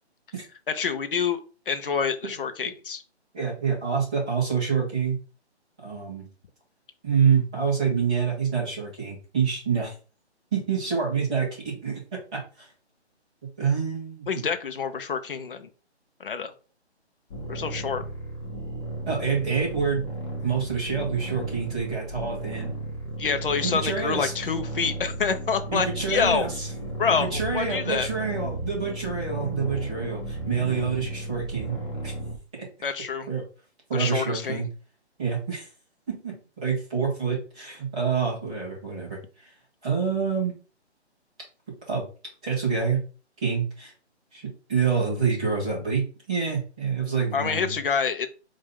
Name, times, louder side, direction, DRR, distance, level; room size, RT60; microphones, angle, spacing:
voice 1, 0.7-1.4 1.7-3.0 14.3-15.7 16.2-16.5 17.5-18.0 23.2-26.5 27.0-28.1 32.8-33.3 33.9-34.6 47.3-48.3, left 6 dB, 50° left, 8 dB, 0.7 m, -27 dB
voice 2, 3.3-5.2 5.8-6.3 7.0-9.9 10.5-12.7 13.6-14.4 19.1-20.1 20.4-22.7 23.6-24.3 25.7-26.7 27.1-31.7 32.0-32.1 33.3-33.4 33.9-34.7 35.2-35.7 36.1-39.5 39.8-40.5 41.9-42.0 42.4-43.0 43.4-43.9 44.3-47.8, right 6 dB, 5° right, -8 dB, 0.5 m, -27 dB
sound 1, 17.3-32.4, right 2 dB, 25° left, 0.9 m, -34 dB
4.3 x 2.5 x 3.6 m, 0.36 s
figure-of-eight pair, 155°, 34 cm